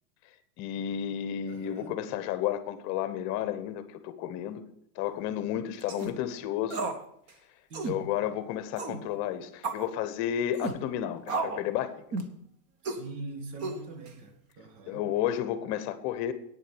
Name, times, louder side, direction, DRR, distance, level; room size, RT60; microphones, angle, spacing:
voice 1, 0.6-4.6 5.0-6.8 7.8-11.9 14.9-16.3, left 10 dB, 35° left, 1.0 m, -32 dB
voice 2, 1.4-2.0 7.7-8.1 12.8-15.1, right 3 dB, 85° right, 2.5 m, -43 dB
sound 1, 5.8-6.1 6.7-7.0 7.3-7.4 7.7-8.0 8.8-9.0 9.6-9.9 10.5-10.8 11.3-11.7 12.1-12.4 12.8-13.0 13.6-14.1, right 3 dB, 30° right, 1.1 m, -33 dB
9.2 x 7.4 x 8.6 m
supercardioid pair, 150°, 47 cm